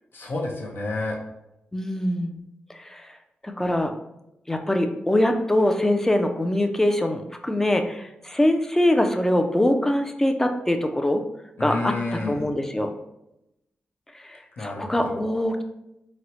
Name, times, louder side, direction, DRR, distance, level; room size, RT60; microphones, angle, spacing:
voice 1, 0.1-1.2 11.6-12.5 14.6-15.2, left 2 dB, 70° left, -1 dB, 0.7 m, -30 dB
voice 2, 1.7-2.4 2.7-3.1 3.4-3.9 4.5-11.2 11.6-11.9 12.3-12.9 14.1-15.6, left 1 dB, 10° left, 6 dB, 0.3 m, -23 dB
4.1 x 2.0 x 2.9 m, 0.88 s
wide cardioid pair, 90°, 4 cm